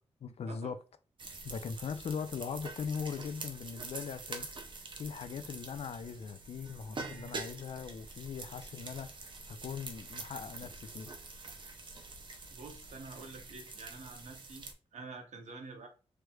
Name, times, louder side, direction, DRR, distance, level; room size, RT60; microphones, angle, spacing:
voice 1, 0.2-0.8 1.4-11.1, left 6 dB, 65° left, 0.4 m, -40 dB
sound 1, 1.2-14.7, right 3 dB, 45° right, 0.5 m, -46 dB
voice 2, 12.5-15.9, right 3 dB, 90° right, 0.8 m, -48 dB
3.2 x 3.2 x 2.3 m
wide cardioid pair, 160°, 12 cm